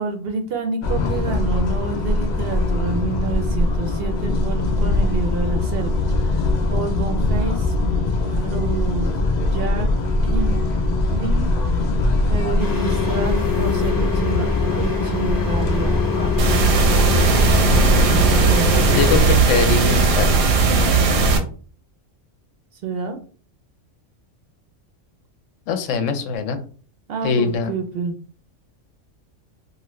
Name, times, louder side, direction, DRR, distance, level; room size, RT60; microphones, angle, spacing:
voice 1, 0.0-7.7 8.2-9.1 9.4-9.9 10.2-10.6 11.1-11.5 12.3-14.5 14.8-16.1 18.4-18.8 22.8-23.2 27.1-28.2, right 4 dB, 65° right, 4 dB, 0.7 m, -28 dB
sound 1, 0.8-19.2, left 2 dB, 70° left, 0.4 m, -22 dB
sound 2, 12.6-19.2, left 5 dB, 20° left, 0.7 m, -26 dB
sound 3, 16.4-21.4, right 4 dB, 85° right, 1.0 m, -17 dB
voice 2, 18.9-20.4 25.7-26.6 27.2-27.7, left 4 dB, 85° left, 8 dB, 1.0 m, -22 dB
2.7 x 2.5 x 3.0 m, 0.41 s
omnidirectional pair, 1.3 m